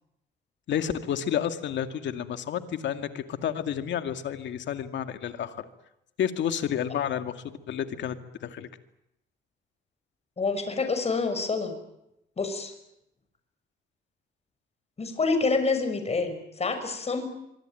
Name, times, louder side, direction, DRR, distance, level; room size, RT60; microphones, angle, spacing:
voice 1, 0.7-5.6 6.2-8.7, left 9 dB, 75° left, 8 dB, 2.3 m, -30 dB
voice 2, 10.4-11.7 12.4-12.7 15.0-17.3, left 4 dB, 35° left, 8 dB, 6.2 m, -27 dB
24.5 x 24.0 x 9.2 m, 0.82 s
cardioid pair, 100°, 19 cm